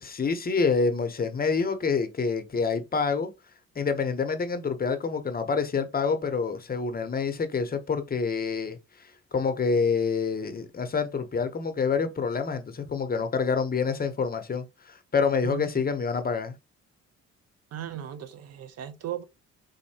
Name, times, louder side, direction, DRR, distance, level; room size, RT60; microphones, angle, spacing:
voice 1, 0.0-3.3 3.8-16.5, left 5 dB, 30° left, 0.7 m, -27 dB
voice 2, 15.4-15.9 17.7-19.2, right 11 dB, 55° right, 0.5 m, -37 dB
4.2 x 2.6 x 2.7 m
cardioid pair, 90°, 30 cm